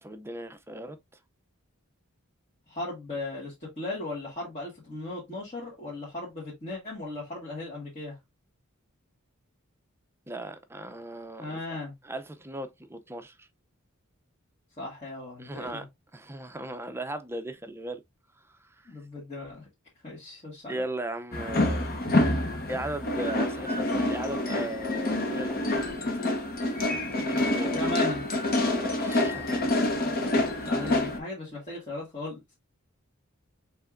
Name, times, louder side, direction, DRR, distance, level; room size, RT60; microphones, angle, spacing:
voice 1, 0.0-1.0 10.3-11.8 12.0-13.5 15.4-15.9 16.1-18.0 18.5-18.9 20.7-21.9 22.7-25.9 27.1-27.8 28.7-30.9, right 1 dB, 10° right, 0.6 m, -38 dB
voice 2, 2.7-8.2 11.4-11.9 14.8-15.8 18.9-19.7 20.0-20.9 27.7-28.2 30.5-32.5, left 2 dB, 30° left, 2.2 m, -37 dB
sound 1, 21.3-31.2, left 1 dB, 45° left, 1.1 m, -27 dB
5.3 x 3.4 x 2.5 m
head